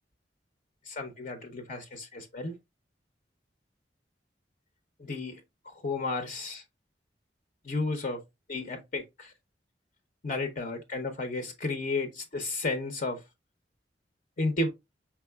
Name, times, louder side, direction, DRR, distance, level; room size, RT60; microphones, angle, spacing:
voice 1, 0.9-2.6 5.0-5.4 5.7-6.6 7.6-8.2 8.5-9.3 10.2-13.2 14.4-14.7, left 2 dB, 50° left, 0.7 m, -33 dB
4.6 x 3.6 x 2.2 m
head